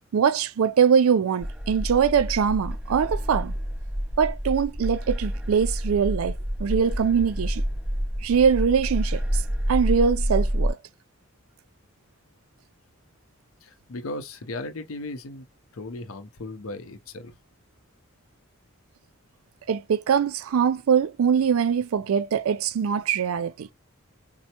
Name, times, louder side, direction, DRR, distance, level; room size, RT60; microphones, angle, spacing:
voice 1, 0.1-3.5 4.2-6.3 6.6-7.6 8.2-9.2 9.7-10.8 19.7-23.7, right 7 dB, 80° right, 0.4 m, -22 dB
sound 1, 1.4-10.7, equal, 5° right, 0.3 m, -28 dB
voice 2, 13.6-15.5 15.7-17.4, left 2 dB, 75° left, 0.6 m, -36 dB
4.3 x 2.0 x 2.8 m
head